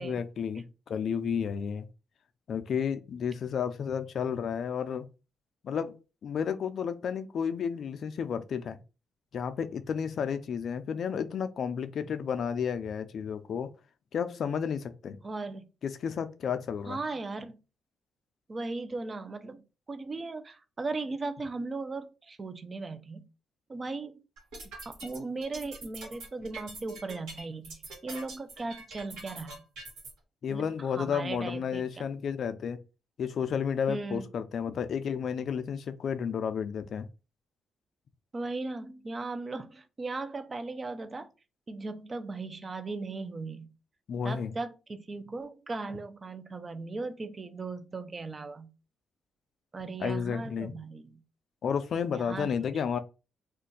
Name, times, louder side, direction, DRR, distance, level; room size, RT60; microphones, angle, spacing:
voice 1, 0.0-1.9 2.5-5.1 5.6-5.9 6.2-8.8 9.3-13.7 14.1-15.2 15.8-17.0 30.4-32.8 33.2-37.1 44.1-44.5 50.0-50.7 51.6-53.0, left 7 dB, 65° left, 0.4 m, -32 dB
voice 2, 15.2-15.6 16.9-17.6 18.5-19.6 19.9-23.3 23.7-24.2 24.8-29.6 30.5-31.8 33.9-34.3 38.3-41.3 41.7-43.7 44.2-48.7 49.7-51.2 52.1-52.8, right 3 dB, 35° right, 0.5 m, -37 dB
sound 1, 24.4-30.1, right 2 dB, 85° right, 1.2 m, -44 dB
2.5 x 2.2 x 3.9 m
supercardioid pair, 65°, 0 cm